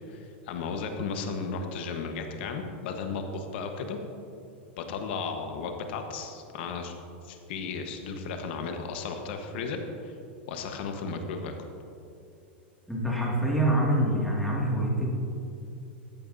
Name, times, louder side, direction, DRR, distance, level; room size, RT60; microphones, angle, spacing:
voice 1, 0.1-4.0 4.8-6.9 7.2-10.1 10.5-11.5, left 4 dB, 65° left, 5 dB, 1.1 m, -34 dB
voice 2, 12.9-15.1, right 1 dB, ahead, -4 dB, 2.1 m, -25 dB
13.0 x 8.6 x 2.7 m, 2.6 s
supercardioid pair, 125°, 6 cm